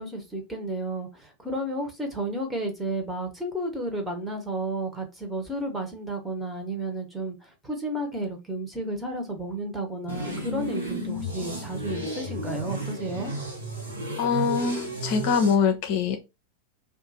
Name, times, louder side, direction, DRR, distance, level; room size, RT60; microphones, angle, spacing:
voice 1, 0.0-13.3, right 1 dB, 5° right, 1.0 m, -32 dB
sound 1, 10.1-15.5, equal, 75° right, 1.1 m, -33 dB
voice 2, 14.2-16.2, left 6 dB, 45° left, 0.5 m, -23 dB
2.5 x 2.4 x 4.0 m
figure-of-eight pair, 90°, 0 cm